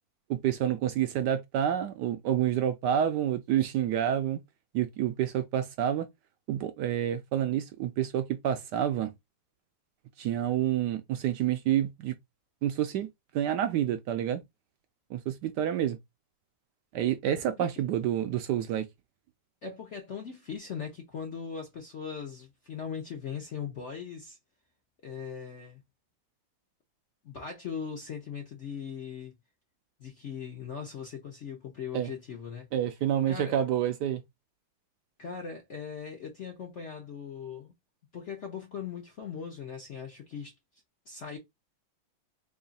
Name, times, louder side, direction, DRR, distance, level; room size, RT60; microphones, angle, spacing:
voice 1, 0.3-4.4 4.7-6.1 6.5-9.1 10.2-12.1 12.6-13.1 13.3-14.4 15.1-16.0 16.9-18.9 31.9-32.1 32.7-34.2, right 10 dB, 75° right, 1.0 m, -28 dB
voice 2, 19.6-24.4 25.0-25.8 27.2-29.3 30.0-32.7 33.3-33.6 35.2-37.7 38.1-40.5 41.1-41.4, left 6 dB, 60° left, 0.7 m, -39 dB
3.6 x 2.4 x 3.9 m
omnidirectional pair, 2.2 m